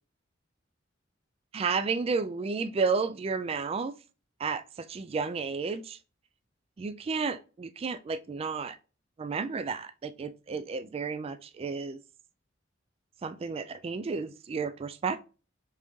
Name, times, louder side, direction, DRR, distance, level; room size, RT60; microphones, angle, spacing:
voice 1, 1.5-3.9 4.4-6.0 6.8-8.8 9.2-12.0 13.2-15.2, right 5 dB, 30° right, 0.3 m, -32 dB
4.5 x 3.5 x 3.1 m
head